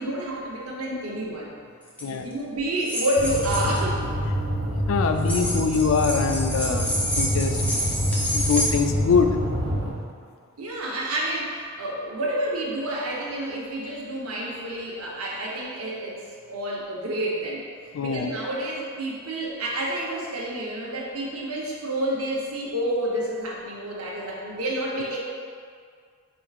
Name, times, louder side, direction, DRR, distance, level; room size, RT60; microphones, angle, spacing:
voice 1, 0.0-1.5 2.0-4.1 10.6-16.2 16.5-17.6 18.0-25.2, right 1 dB, 85° right, -3 dB, 0.8 m, -29 dB
sound 1, 1.9-2.0 2.8-3.8 5.2-8.7, equal, 5° left, 0.5 m, -28 dB
sound 2, 3.2-9.9, equal, 50° right, 0.8 m, -27 dB
voice 2, 4.9-6.9 7.1-7.6 8.3-9.4 17.9-18.3, left 5 dB, 65° left, 6 dB, 0.3 m, -23 dB
4.6 x 4.3 x 2.4 m, 2.1 s
head